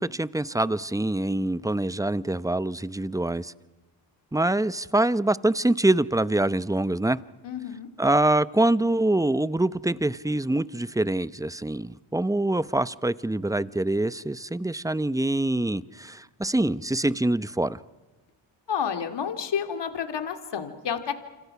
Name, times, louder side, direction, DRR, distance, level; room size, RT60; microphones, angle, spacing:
voice 1, 0.0-3.5 4.3-7.2 8.0-17.8, right 1 dB, 5° right, 0.8 m, -25 dB
voice 2, 7.4-7.9 18.7-21.1, left 7 dB, 60° left, 2.6 m, -30 dB
29.0 x 26.0 x 6.0 m
supercardioid pair, 60°, 46 cm